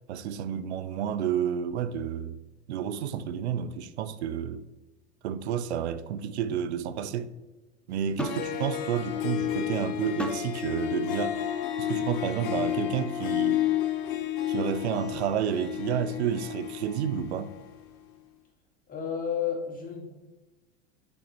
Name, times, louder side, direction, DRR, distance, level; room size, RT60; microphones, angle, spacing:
voice 1, 0.1-2.4 2.7-4.6 5.2-7.3 7.9-11.4 11.8-13.6 14.5-17.6, right 8 dB, 85° right, 0.5 m, -30 dB
Harp, 8.0-8.1 8.3-17.8, left 11 dB, 60° left, 0.9 m, -31 dB
sound 1, 8.2-8.5 10.2-10.5 11.6-11.7, left 1 dB, 5° left, 0.5 m, -35 dB
voice 2, 18.9-20.1, left 7 dB, 25° left, 1.8 m, -31 dB
6.9 x 4.1 x 4.0 m
hypercardioid pair, 100°, 32 cm